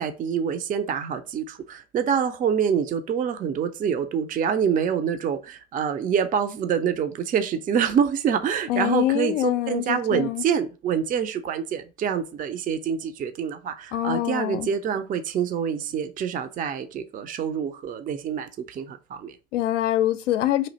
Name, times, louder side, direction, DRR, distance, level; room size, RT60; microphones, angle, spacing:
voice 1, 0.0-19.3, right 7 dB, 25° right, 0.4 m, -26 dB
voice 2, 8.7-10.4 13.9-14.7 19.5-20.7, left 13 dB, 80° left, 0.5 m, -24 dB
3.1 x 2.4 x 3.9 m
hypercardioid pair, 80°, 36 cm